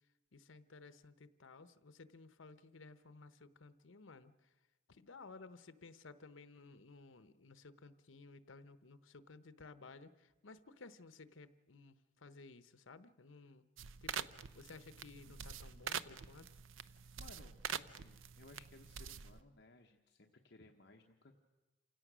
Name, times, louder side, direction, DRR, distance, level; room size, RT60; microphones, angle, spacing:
voice 1, 0.3-4.5 4.9-13.6 14.0-16.5, left 3 dB, 85° left, 13 dB, 0.9 m, -57 dB
sound 1, 13.8-19.4, right 8 dB, 90° right, 0.6 m, -46 dB
voice 2, 16.8-21.4, left 2 dB, 60° left, 2 dB, 1.1 m, -61 dB
28.0 x 17.0 x 6.2 m, 1.2 s
head